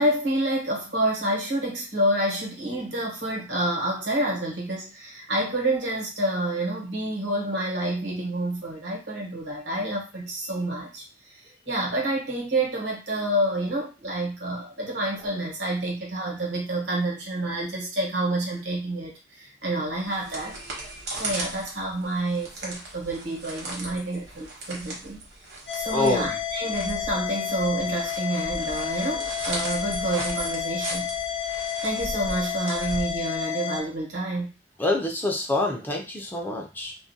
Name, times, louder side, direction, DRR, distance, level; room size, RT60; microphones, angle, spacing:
voice 1, 0.0-11.0 11.3-11.4 11.7-25.2 25.7-31.1 31.8-34.5, right 1 dB, 90° right, -1 dB, 1.0 m, -28 dB
sound 1, 19.9-33.6, right 2 dB, 65° right, 0.9 m, -38 dB
voice 2, 20.4-21.1 25.9-26.3 34.8-36.9, left 2 dB, 10° left, 0 dB, 0.4 m, -27 dB
sound 2, 25.7-33.8, left 9 dB, 85° left, 0.7 m, -30 dB
2.3 x 2.1 x 2.6 m, 0.31 s
head